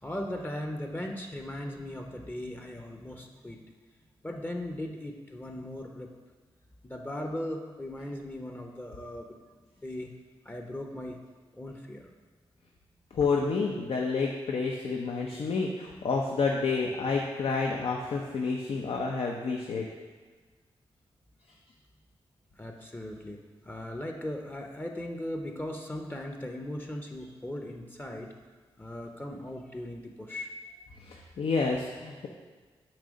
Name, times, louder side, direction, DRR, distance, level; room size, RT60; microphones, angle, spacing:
voice 1, 0.0-3.6 4.2-6.1 6.8-10.1 10.4-11.2 11.5-12.1 22.5-28.3 28.8-30.5, left 1 dB, 20° left, 3 dB, 0.7 m, -38 dB
voice 2, 13.1-19.8 31.0-32.3, left 4 dB, 65° left, 0 dB, 0.6 m, -29 dB
7.3 x 2.8 x 5.1 m, 1.4 s
cardioid pair, 55°, 10 cm